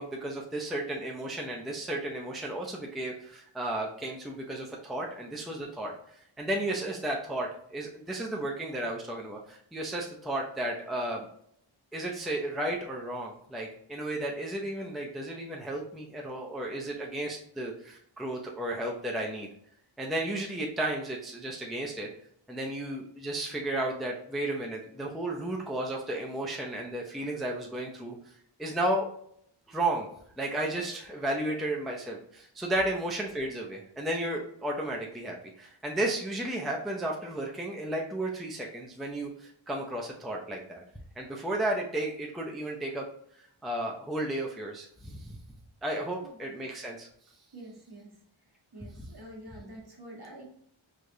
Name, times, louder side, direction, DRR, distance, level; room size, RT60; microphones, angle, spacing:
voice 1, 0.0-5.9 6.4-11.3 11.9-19.5 20.0-22.1 22.5-28.2 28.6-29.1 29.7-30.1 30.4-40.8 41.2-43.0 43.6-45.4 45.8-47.1, right 1 dB, ahead, -1 dB, 0.5 m, -33 dB
voice 2, 47.5-48.2 48.7-50.4, right 1 dB, 50° right, -2 dB, 1.3 m, -47 dB
4.8 x 2.4 x 2.7 m, 0.68 s
wide cardioid pair, 50°, 50 cm